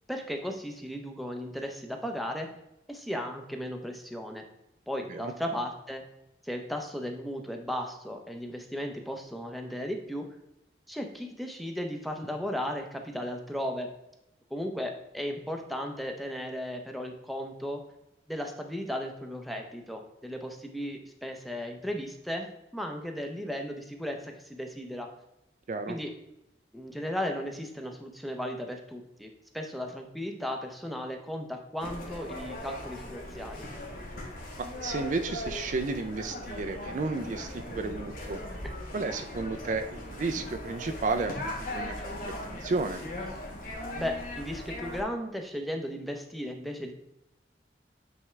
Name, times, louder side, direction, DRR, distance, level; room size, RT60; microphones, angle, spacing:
voice 1, 0.1-2.5 2.9-4.4 4.9-6.0 6.4-10.3 10.9-13.9 14.5-17.8 18.3-25.1 25.9-26.1 26.7-33.7 38.6-38.7 42.0-42.1 44.0-46.9, equal, ahead, 3 dB, 0.6 m, -35 dB
sound 1, 31.8-45.0, left 1 dB, 50° left, 1.3 m, -39 dB
voice 2, 34.6-38.4 38.9-43.0, right 3 dB, 45° right, 8 dB, 0.4 m, -33 dB
8.6 x 3.5 x 3.2 m, 0.88 s
head